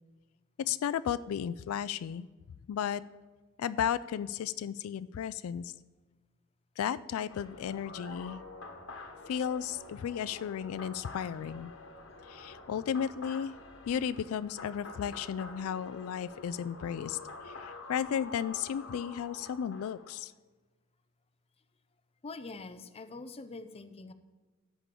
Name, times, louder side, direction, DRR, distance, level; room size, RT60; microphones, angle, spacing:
voice 1, 0.6-2.3 2.7-3.0 3.6-5.7 6.8-8.4 9.3-11.7 12.3-13.5 13.9-17.2 17.4-20.3, left 8 dB, 90° left, 15 dB, 0.3 m, -34 dB
sound 1, 7.3-20.2, left 3 dB, 65° left, 1.2 m, -47 dB
voice 2, 22.2-24.1, left 3 dB, 30° left, 11 dB, 0.5 m, -44 dB
13.0 x 8.3 x 3.7 m, 1.3 s
head